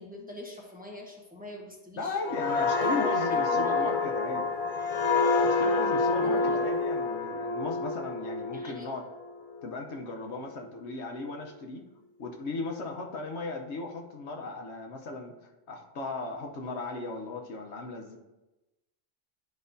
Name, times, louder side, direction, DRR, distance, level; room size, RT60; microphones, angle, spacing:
voice 1, 0.0-2.2 2.8-4.0 6.1-6.6 8.5-8.9, left 1 dB, 10° right, -2 dB, 1.1 m, -42 dB
voice 2, 2.0-4.5 5.4-9.0 9.6-11.8 12.2-15.3 15.7-18.2, left 3 dB, 85° left, 2 dB, 1.2 m, -36 dB
sound 1, 2.2-9.7 10.1-10.4, left 4 dB, 50° left, 0.5 m, -28 dB
11.5 x 4.7 x 2.7 m, 1.0 s
omnidirectional pair, 1.1 m